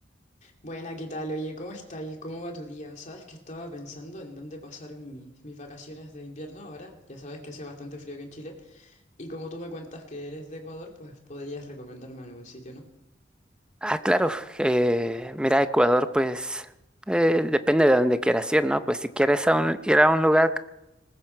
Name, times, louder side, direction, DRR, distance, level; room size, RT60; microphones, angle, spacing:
voice 1, 0.4-12.9, equal, 40° left, 1 dB, 2.7 m, -39 dB
voice 2, 13.8-16.7 17.1-20.6, equal, 5° right, 11 dB, 0.7 m, -22 dB
20.0 x 15.5 x 4.5 m, 0.91 s
head